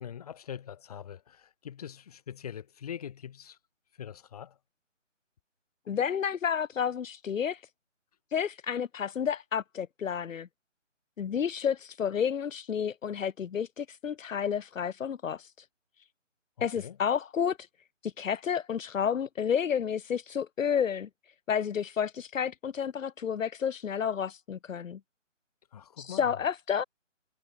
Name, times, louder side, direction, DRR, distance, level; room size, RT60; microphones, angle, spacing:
voice 1, 0.0-3.6 4.0-4.6 16.6-17.0 25.7-26.3, left 9 dB, 30° left, 2.9 m, -43 dB
voice 2, 5.9-7.6 8.3-10.5 11.2-15.5 16.6-17.6 18.0-21.1 21.5-25.0 26.0-26.8, left 7 dB, 85° left, 0.6 m, -30 dB
figure-of-eight pair, 155°, 38 cm